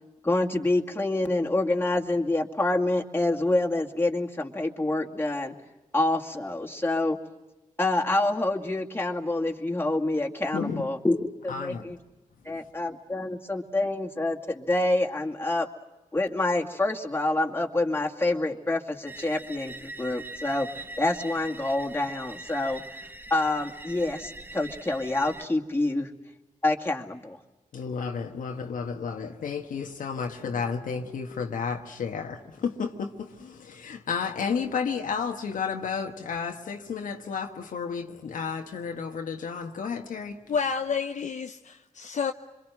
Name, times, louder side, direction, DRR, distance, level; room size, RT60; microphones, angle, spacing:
voice 1, 0.2-5.6 5.9-7.2 7.8-11.2 11.4-12.0 12.4-15.7 16.1-20.7 21.0-22.8 23.3-26.1 26.6-27.4, left 2 dB, 15° left, 2.4 m, -27 dB
voice 2, 10.5-10.9 11.5-12.0 27.7-40.4, left 6 dB, 80° left, 1.4 m, -32 dB
sound 1, 19.1-25.5, right 2 dB, 15° right, 1.0 m, -42 dB
voice 3, 40.5-42.3, left 6 dB, 65° left, 0.7 m, -29 dB
26.0 x 22.5 x 7.7 m
supercardioid pair, 40°, 14 cm